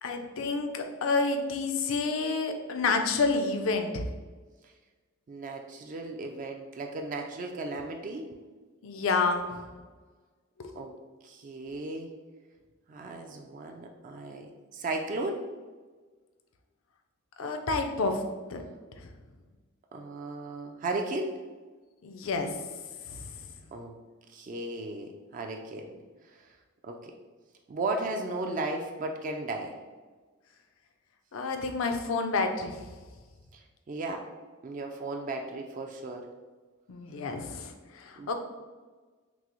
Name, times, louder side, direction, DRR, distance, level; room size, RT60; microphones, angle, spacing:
voice 1, 0.0-4.1 8.8-9.6 10.6-10.7 17.4-18.2 18.5-18.6 19.0-19.1 22.0-22.6 23.1-23.4 31.3-32.8 36.9-38.3, left 3 dB, 80° left, 5 dB, 0.5 m, -29 dB
voice 2, 5.3-8.3 9.0-9.1 10.8-11.0 11.2-12.1 12.9-15.5 19.9-21.4 23.7-24.0 24.3-26.0 26.3-26.5 26.8-27.1 27.7-29.8 33.5-33.6 33.9-34.3 34.6-36.3 38.2-38.3, right 2 dB, 40° right, 3 dB, 0.3 m, -35 dB
6.0 x 2.0 x 2.9 m, 1.3 s
head